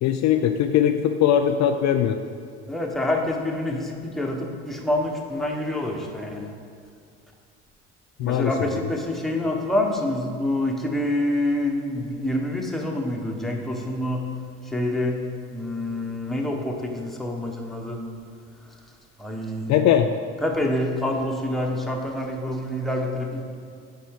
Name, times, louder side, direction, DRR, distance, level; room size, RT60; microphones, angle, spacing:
voice 1, 0.0-2.2 8.2-8.5 19.7-20.1, left 9 dB, 55° left, 7 dB, 0.4 m, -20 dB
voice 2, 2.7-6.5 8.2-14.3 14.7-15.2 15.5-18.0 19.2-19.7 20.4-23.6, left 1 dB, ahead, 0 dB, 1.3 m, -27 dB
8.3 x 4.6 x 4.8 m, 2.3 s
hypercardioid pair, 65°, 35 cm